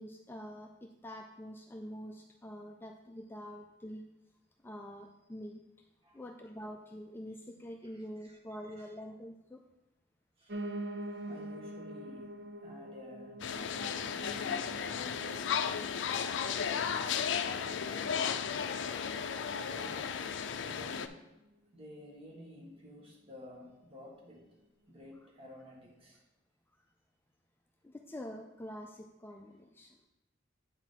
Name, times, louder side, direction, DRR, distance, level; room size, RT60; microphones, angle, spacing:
voice 1, 0.0-4.1 4.6-5.6 6.1-9.6 27.8-30.0, equal, 10° left, 3 dB, 0.4 m, -46 dB
voice 2, 7.9-8.9 10.4-10.6 11.1-13.4 14.1-16.0 16.6-16.9 17.3-18.3 19.6-21.2 21.7-24.5 24.9-26.2, left 1 dB, 30° right, -1 dB, 1.5 m, -52 dB
Piano, 10.5-19.6 20.0-21.2 21.4-21.5 21.8-21.9 22.1-22.2 22.8-22.9, right 1 dB, 60° right, 0.5 m, -46 dB
sound 1, 13.4-21.1, left 7 dB, 80° left, 0.4 m, -34 dB
8.7 x 4.6 x 3.9 m, 0.95 s
head